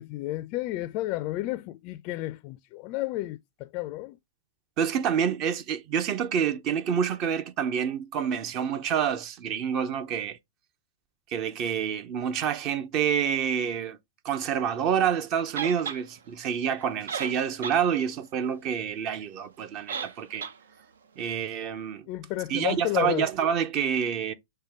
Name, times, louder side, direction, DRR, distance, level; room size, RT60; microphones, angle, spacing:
voice 1, 0.0-4.2 22.1-23.2, left 17 dB, 45° left, 0.4 m, -31 dB
voice 2, 4.8-10.4 11.3-14.0 14.2-20.4 21.2-22.1 22.5-24.3, right 8 dB, 40° right, 0.7 m, -28 dB
sound 1, 15.6-16.0 16.8-16.9 17.1-17.8 18.2-18.3 19.9-20.1 20.4-20.6, right 6 dB, 80° right, 0.8 m, -33 dB
6.5 x 2.2 x 3.6 m
hypercardioid pair, 125°, 0 cm